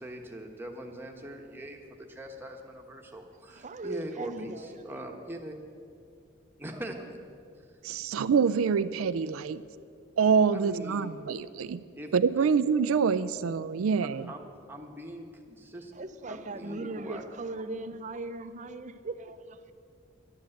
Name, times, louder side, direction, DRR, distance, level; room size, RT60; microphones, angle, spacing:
voice 1, 0.0-4.5 4.8-5.5 6.6-7.1 8.3-8.4 10.5-11.1 12.0-12.1 12.4-12.5 14.3-14.4 14.7-15.9 16.3-17.2, right 1 dB, 10° right, 2 dB, 1.2 m, -41 dB
voice 2, 3.3-4.9 15.9-19.7, right 2 dB, 35° right, 10 dB, 0.6 m, -39 dB
voice 3, 7.8-9.6 10.2-11.8 12.1-14.3, right 6 dB, 85° right, 13 dB, 0.4 m, -26 dB
11.5 x 10.5 x 7.8 m, 2.4 s
head